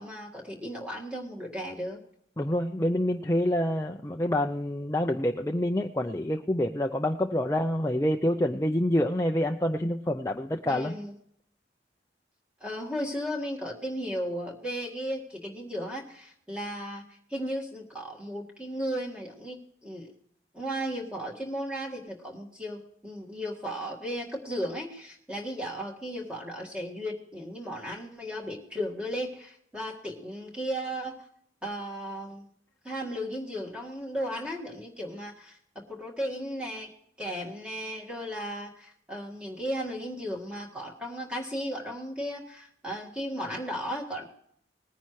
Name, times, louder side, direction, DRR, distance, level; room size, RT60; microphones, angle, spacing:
voice 1, 0.0-2.0 10.7-11.1 12.6-17.0 17.3-20.1 20.5-31.2 31.6-32.5 32.8-35.6 35.9-36.9 37.2-44.2, equal, 5° right, -1 dB, 1.8 m, -35 dB
voice 2, 2.4-10.9, left 1 dB, 15° left, 3 dB, 0.5 m, -27 dB
20.0 x 10.0 x 3.1 m, 0.68 s
head